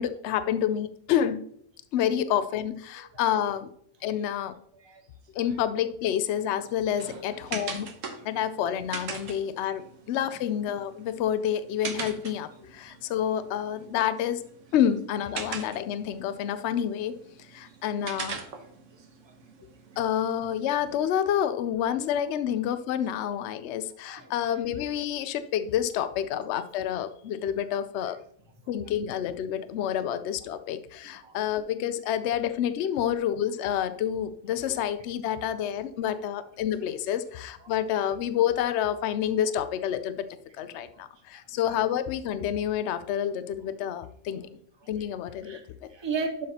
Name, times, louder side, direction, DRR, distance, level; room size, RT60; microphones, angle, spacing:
voice 1, 0.0-1.5 1.9-3.7 4.0-4.6 5.3-7.9 8.2-14.4 14.7-17.1 17.5-18.4 20.0-28.2 28.7-40.3 40.6-44.5 44.9-45.9, left 10 dB, 70° left, 12 dB, 0.8 m, -28 dB
sound 1, 6.4-21.0, right 5 dB, 90° right, 1.3 m, -42 dB
voice 2, 7.0-7.6 12.9-13.0 19.0-19.3 24.1-24.3 31.2-31.4 44.8-44.9 45.4-45.6 45.9-46.4, right 4 dB, 25° right, 3 dB, 1.0 m, -36 dB
11.5 x 5.8 x 2.8 m, 0.65 s
omnidirectional pair, 1.3 m